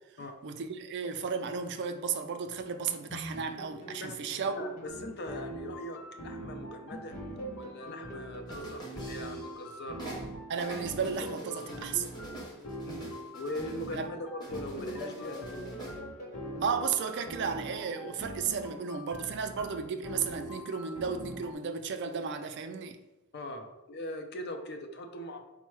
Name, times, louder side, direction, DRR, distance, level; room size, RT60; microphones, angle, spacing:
voice 1, 0.4-4.5 10.5-12.1 13.9-14.1 16.6-23.0, right 6 dB, 55° right, 0.4 m, -34 dB
sound 1, 3.1-6.4 6.9-10.2 10.7-14.0 14.5-17.8, right 1 dB, 35° left, 1.1 m, -45 dB
voice 2, 4.5-7.2 7.6-10.1 12.8-16.0 23.3-25.4, left 1 dB, 50° left, 0.5 m, -41 dB
sound 2, 4.9-21.5, equal, 70° left, 0.9 m, -43 dB
sound 3, 8.5-9.7 10.0-14.0 14.4-16.0, right 1 dB, 20° left, 0.8 m, -46 dB
4.5 x 2.1 x 4.5 m
head